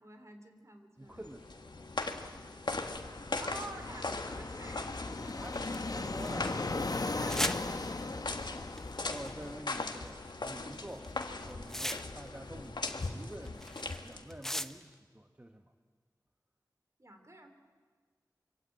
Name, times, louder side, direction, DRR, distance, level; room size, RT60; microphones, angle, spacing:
voice 1, 0.0-1.2 3.4-5.7 6.9-9.0 17.0-17.5, right 1 dB, 40° right, 6 dB, 3.5 m, -50 dB
voice 2, 1.0-1.7 5.2-6.7 9.1-11.1 11.4-15.7, right 1 dB, 20° right, 5 dB, 1.2 m, -48 dB
sound 1, 1.1-14.4, left 3 dB, 85° left, 1.7 m, -40 dB
Fixed-wing aircraft airplane, 2.8-9.6, left 3 dB, 60° left, 1.0 m, -38 dB
sound 2, 4.9-6.5 7.3-7.6 8.7-9.5 10.3-10.6 10.9-12.4 12.6-14.9, equal, 5° left, 1.0 m, -39 dB
24.5 x 24.5 x 8.9 m, 1.5 s
wide cardioid pair, 60°, 7 cm